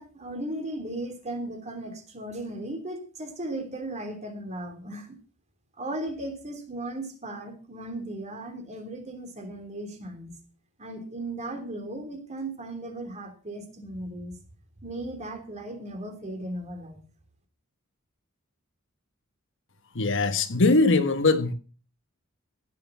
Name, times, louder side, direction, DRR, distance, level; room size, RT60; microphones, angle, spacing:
voice 1, 0.0-5.1 5.8-10.3 10.8-14.4 14.8-17.0, right 1 dB, 30° right, 3.2 m, -36 dB
voice 2, 19.9-21.5, left 3 dB, 60° left, 1.4 m, -21 dB
16.0 x 7.9 x 5.8 m
head